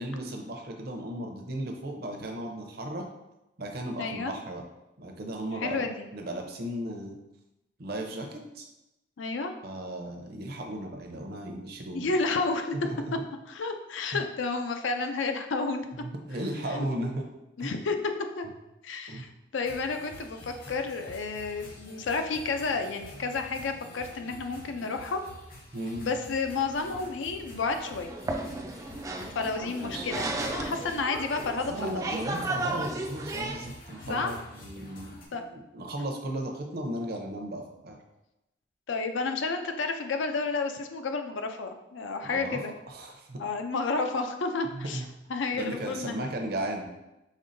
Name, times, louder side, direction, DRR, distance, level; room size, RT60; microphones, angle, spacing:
voice 1, 0.0-3.1 3.6-4.6 5.0-5.8 6.1-7.2 7.8-8.7 9.6-12.1 12.8-13.1 14.1-14.2 16.0-17.3 17.6-17.7 19.1-19.3 25.7-26.1 29.7-30.1 31.7-38.0 42.2-42.6 42.9-43.4 44.7-45.1 45.5-46.8, right 1 dB, 55° right, 3 dB, 0.7 m, -35 dB
voice 2, 4.0-4.3 5.6-6.0 9.2-9.5 11.9-12.7 13.5-15.9 16.8-16.9 17.6-18.0 18.4-18.5 18.8-25.2 26.0-28.1 29.2-32.0 34.0-34.3 35.3-35.5 38.9-42.7 43.4-45.0 45.3-46.2, left 4 dB, 80° left, 6 dB, 0.5 m, -31 dB
sound 1, 19.6-35.3, left 1 dB, 50° left, 0.9 m, -48 dB
sound 2, 26.4-33.7, right 2 dB, 15° right, 0.3 m, -35 dB
5.3 x 3.7 x 2.6 m, 0.93 s
head